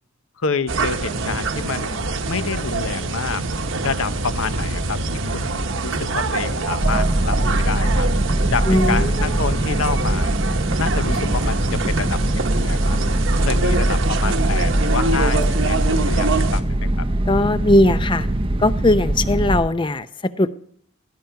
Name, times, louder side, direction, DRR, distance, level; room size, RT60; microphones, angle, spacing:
voice 1, 0.4-3.4 3.8-5.0 5.3-5.5 5.8-8.1 8.5-10.3 10.8-12.2 12.5-13.0 13.4-17.1, left 5 dB, 70° left, 13 dB, 0.7 m, -28 dB
sound 1, 0.7-16.6, right 3 dB, 60° right, 1.0 m, -25 dB
sound 2, 6.8-19.6, right 1 dB, 25° right, 0.6 m, -21 dB
voice 2, 8.7-9.3 17.3-18.3 18.6-20.5, left 1 dB, 20° left, 13 dB, 0.5 m, -19 dB
Bass guitar, 11.1-17.3, equal, 50° left, 2.4 m, -41 dB
18.0 x 10.5 x 5.8 m, 0.64 s
head